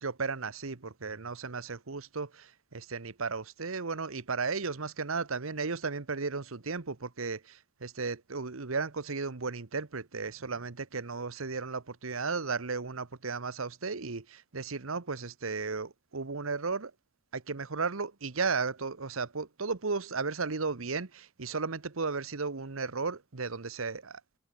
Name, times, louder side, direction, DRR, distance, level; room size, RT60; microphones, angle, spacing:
voice 1, 0.0-16.9 17.3-24.2, right 4 dB, 75° right, 1.2 m, -35 dB
head